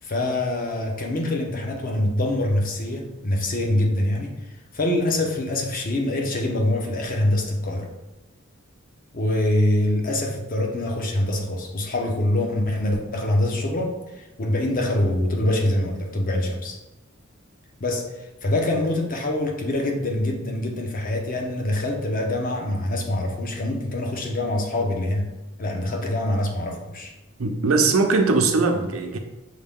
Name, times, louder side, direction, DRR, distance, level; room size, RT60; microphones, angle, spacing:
voice 1, 0.0-7.9 9.1-16.8 17.8-25.3 25.6-27.1, left 1 dB, 40° left, 2 dB, 0.7 m, -25 dB
voice 2, 27.4-29.2, right 3 dB, 75° right, 4 dB, 0.6 m, -20 dB
6.4 x 2.2 x 3.6 m, 1.0 s
head